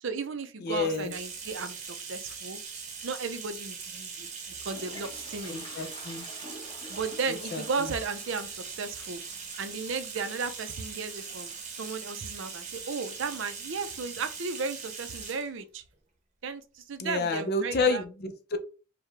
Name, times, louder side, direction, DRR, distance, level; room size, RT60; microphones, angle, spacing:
voice 1, 0.0-2.6 3.0-4.3 4.6-5.6 6.9-9.2 9.6-15.8 16.4-18.0, right 4 dB, 60° right, 0.5 m, -35 dB
voice 2, 0.6-1.1 5.5-6.3 7.3-7.9 17.0-18.6, left 3 dB, 50° left, 0.5 m, -30 dB
Bathtub (filling or washing), 0.8-15.5, right 5 dB, 35° right, 0.8 m, -41 dB
Toilet flush, 4.2-13.1, left 1 dB, 25° left, 1.1 m, -51 dB
4.8 x 2.2 x 3.2 m
head